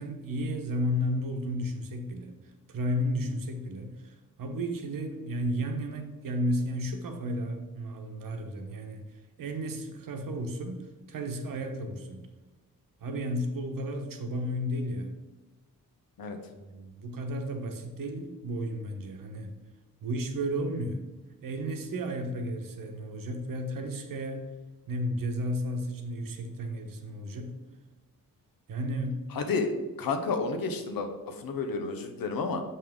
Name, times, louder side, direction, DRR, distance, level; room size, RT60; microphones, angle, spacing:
voice 1, 0.0-2.3 2.7-9.0 9.4-12.3 13.0-15.2 16.6-19.5 20.0-21.0 21.4-24.5 24.9-27.6 28.7-29.3, equal, 75° right, 5 dB, 1.1 m, -33 dB
voice 2, 29.3-32.6, left 4 dB, 85° left, 6 dB, 1.0 m, -31 dB
6.6 x 5.6 x 3.6 m, 1.2 s
wide cardioid pair, 145°, 34 cm